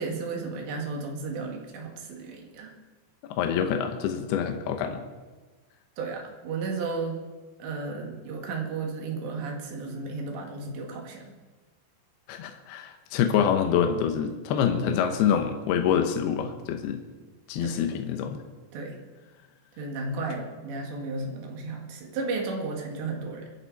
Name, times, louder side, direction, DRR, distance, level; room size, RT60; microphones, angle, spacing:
voice 1, 0.0-2.7 6.0-7.3 7.6-11.3 17.6-17.8 18.7-19.0 19.8-23.5, right 3 dB, 80° right, 1 dB, 4.3 m, -33 dB
voice 2, 3.3-5.1 12.3-17.0 17.5-18.4, left 8 dB, 75° left, 5 dB, 2.8 m, -26 dB
26.0 x 11.0 x 4.1 m, 1.3 s
omnidirectional pair, 5.0 m